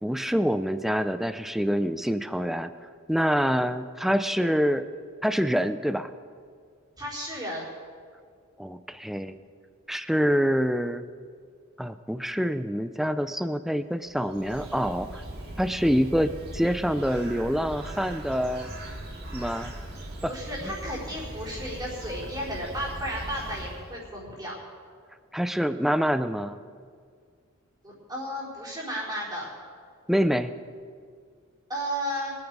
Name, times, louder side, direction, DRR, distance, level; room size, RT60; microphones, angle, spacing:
voice 1, 0.0-2.7 3.1-4.8 5.2-6.1 8.6-9.3 9.9-11.0 11.8-15.2 15.6-18.7 19.3-19.7 20.2-20.3 25.3-26.6 30.1-30.5, equal, ahead, 11 dB, 0.4 m, -26 dB
voice 2, 7.0-7.7 20.2-24.6 27.8-29.5 31.7-32.3, equal, 20° right, -6 dB, 4.3 m, -33 dB
Bird, 14.1-24.1, right 1 dB, 50° right, 1.9 m, -40 dB
24.0 x 8.7 x 4.8 m, 2.1 s
head